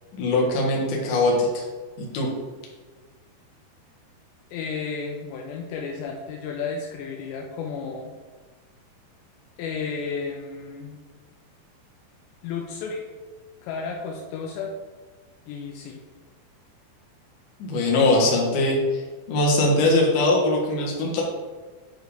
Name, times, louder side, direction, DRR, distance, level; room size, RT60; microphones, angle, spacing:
voice 1, 0.1-1.6 2.0-2.3 17.6-19.0 19.3-21.2, left 2 dB, 60° left, -3 dB, 2.4 m, -21 dB
voice 2, 4.5-8.1 9.6-11.0 12.4-13.1 13.6-14.7 15.5-16.0, left 5 dB, 80° left, 1 dB, 2.7 m, -32 dB
9.3 x 4.5 x 3.4 m, 1.4 s
omnidirectional pair, 5.2 m